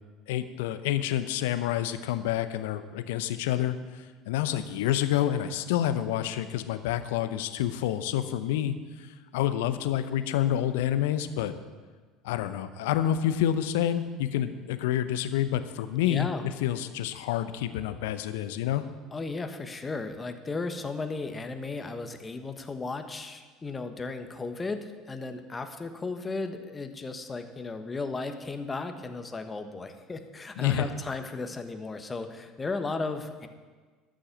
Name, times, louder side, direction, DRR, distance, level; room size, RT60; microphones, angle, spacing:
voice 1, 0.3-11.5 12.2-16.3 16.6-18.8 30.6-30.9, left 11 dB, 70° left, 11 dB, 0.7 m, -28 dB
voice 2, 16.0-16.4 19.1-33.5, left 3 dB, 20° left, 8 dB, 1.2 m, -35 dB
12.5 x 6.3 x 8.4 m, 1.4 s
figure-of-eight pair, 65°, 0 cm